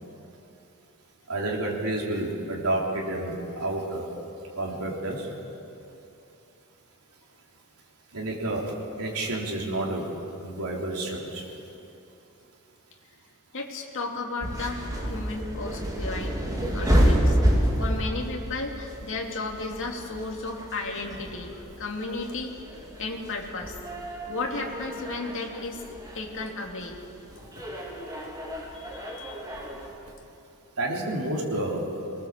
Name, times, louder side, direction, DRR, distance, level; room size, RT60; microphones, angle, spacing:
voice 1, 1.3-4.1 4.6-5.3 8.1-8.7 9.0-10.1 10.4-11.5 30.8-31.8, right 1 dB, 80° right, -2 dB, 3.6 m, -29 dB
voice 2, 13.5-14.8 15.1-16.4 16.7-17.4 17.8-21.5 21.8-22.5 23.0-23.8 24.3-25.8 26.1-27.0 28.7-29.6, left 3 dB, 60° left, 1 dB, 2.5 m, -34 dB
sound 1, 14.4-29.9, equal, 15° right, 3.3 m, -29 dB
23.5 x 19.5 x 7.5 m, 2.8 s
head